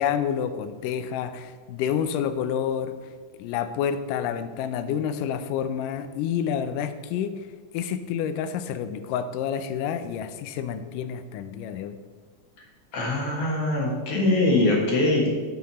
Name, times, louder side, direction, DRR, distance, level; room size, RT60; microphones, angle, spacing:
voice 1, 0.0-3.0 3.3-7.5 7.7-12.0, left 8 dB, 90° left, 11 dB, 2.2 m, -29 dB
voice 2, 12.9-15.3, left 2 dB, 50° left, -2 dB, 2.3 m, -22 dB
11.5 x 5.9 x 4.2 m, 1.5 s
omnidirectional pair, 3.7 m